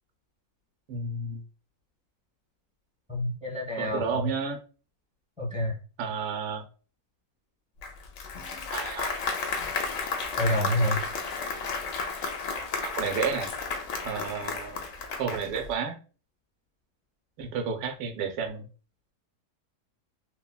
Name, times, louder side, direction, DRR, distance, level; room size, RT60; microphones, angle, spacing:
voice 1, 0.9-1.4 3.8-4.6 6.0-6.6 8.7-9.2 11.5-11.6 12.8-13.5 14.0-14.8 15.2-15.9 17.4-18.7, right 5 dB, 80° right, 4 dB, 1.1 m, -31 dB
voice 2, 3.1-4.3 5.4-5.7 10.4-11.0, equal, 5° right, -4 dB, 0.8 m, -28 dB
Applause, 7.8-15.7, left 4 dB, 70° left, 0.9 m, -33 dB
3.2 x 2.2 x 2.2 m, 0.37 s
omnidirectional pair, 1.7 m